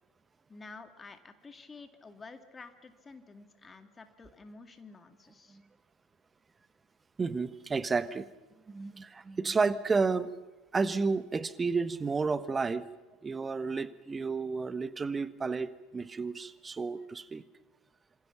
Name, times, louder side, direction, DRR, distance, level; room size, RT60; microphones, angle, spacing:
voice 1, 0.5-5.6, left 4 dB, 20° left, 8 dB, 2.1 m, -50 dB
voice 2, 7.2-8.3 8.7-10.3 10.7-12.9 13.2-17.4, right 4 dB, 20° right, 16 dB, 1.2 m, -31 dB
27.0 x 25.5 x 5.9 m, 1.1 s
figure-of-eight pair, 70°, 0 cm